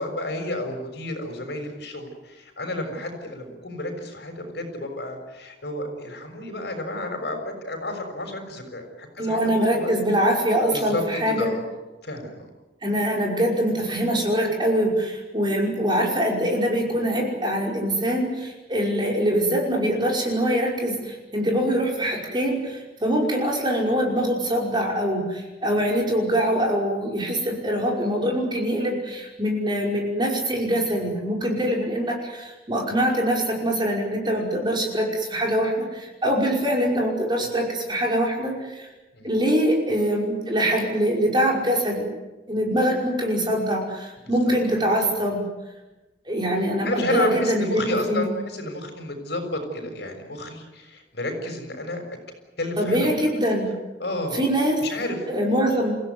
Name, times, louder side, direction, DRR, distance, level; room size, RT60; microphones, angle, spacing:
voice 1, 0.0-9.9 10.7-11.6 12.0-12.5 39.1-39.3 42.5-42.7 44.2-44.4 46.8-52.0 52.6-53.1 54.0-54.4 54.8-55.2, left 1 dB, 65° left, 4 dB, 6.5 m, -31 dB
voice 2, 9.2-11.5 12.8-38.9 39.2-42.1 42.5-45.4 46.3-48.3 52.8-53.7 54.3-54.8 55.3-55.9, equal, 25° right, 0 dB, 5.5 m, -23 dB
29.5 x 16.0 x 9.6 m, 1.1 s
head